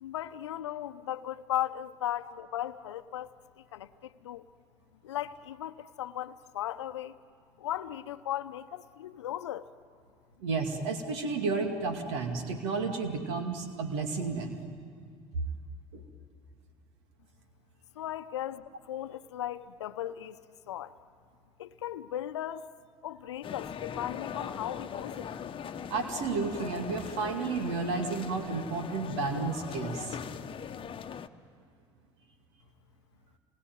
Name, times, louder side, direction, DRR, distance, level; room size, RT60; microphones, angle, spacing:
voice 1, 0.0-3.3 3.7-4.5 5.0-7.2 7.6-9.7 18.0-20.4 20.7-20.9 21.6-22.7 23.0-25.3, left 12 dB, 85° left, 12 dB, 0.8 m, -37 dB
voice 2, 10.4-14.6 15.9-16.0 25.9-30.2, right 4 dB, 75° right, 5 dB, 2.3 m, -32 dB
sound 1, 23.4-31.3, left 7 dB, 35° left, 1.1 m, -40 dB
27.0 x 21.5 x 9.4 m, 2.2 s
hypercardioid pair, 70°, 14 cm